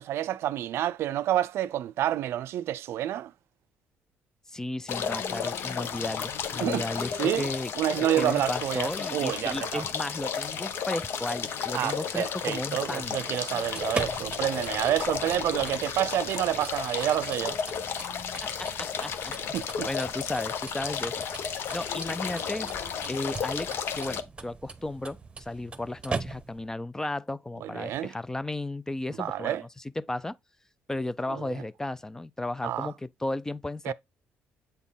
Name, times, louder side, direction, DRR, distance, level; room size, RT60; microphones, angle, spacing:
voice 1, 0.0-3.3 6.6-6.8 7.2-7.5 7.8-9.8 11.7-17.6 19.5-19.9 27.6-28.1 29.2-29.6 31.3-31.4 32.6-32.9 33.8-33.9, right 12 dB, 70° right, 0.4 m, -28 dB
voice 2, 4.5-7.7 8.2-13.2 18.4-19.3 19.9-22.7 23.1-29.6 30.0-30.4 30.9-33.9, left 2 dB, 10° left, 0.4 m, -34 dB
sound 1, 4.9-24.2, left 7 dB, 60° left, 0.8 m, -33 dB
sound 2, 13.6-26.7, right 4 dB, 25° right, 0.8 m, -41 dB
7.9 x 4.1 x 3.7 m
cardioid pair, 90°, 4 cm